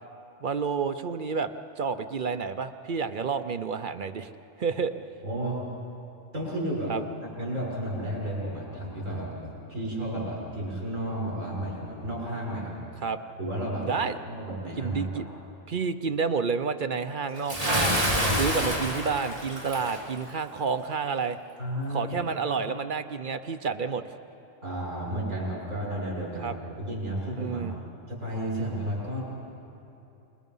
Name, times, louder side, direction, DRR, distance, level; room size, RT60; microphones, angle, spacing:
voice 1, 0.4-1.5 1.8-4.3 4.6-4.9 6.9-7.0 13.0-13.2 13.9-14.2 14.8-15.3 15.7-18.0 18.3-21.4 21.9-24.0 26.4-26.6 27.4-27.8, right 5 dB, 50° right, 10 dB, 0.8 m, -29 dB
voice 2, 5.2-5.7 6.3-6.9 7.4-12.7 13.4-13.9 14.3-15.3 21.6-22.1 24.6-27.7 28.1-29.2, right 1 dB, 80° right, -5 dB, 6.9 m, -32 dB
Bathtub (filling or washing) / Splash splatter, 17.5-20.0, equal, 30° right, 3.6 m, -27 dB
28.5 x 21.0 x 5.5 m, 2.8 s
omnidirectional pair, 1.3 m